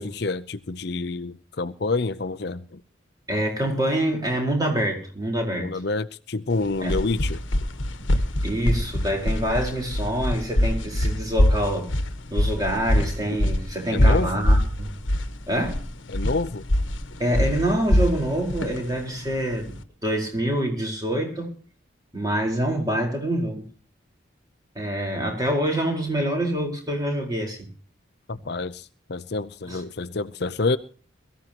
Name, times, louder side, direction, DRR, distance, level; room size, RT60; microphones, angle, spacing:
voice 1, 0.0-2.8 5.6-7.4 13.9-14.4 16.1-16.6 28.3-30.8, left 3 dB, 55° left, 13 dB, 0.6 m, -28 dB
voice 2, 3.3-5.7 6.8-7.0 8.4-11.9 12.3-14.9 15.5-15.8 17.2-19.8 20.0-21.5 22.1-23.7 24.7-27.7 29.7-29.8, right 1 dB, 20° right, 1 dB, 4.5 m, -26 dB
sound 1, 6.6-19.8, left 1 dB, 80° left, 1.3 m, -23 dB
22.5 x 14.0 x 3.0 m, 0.40 s
head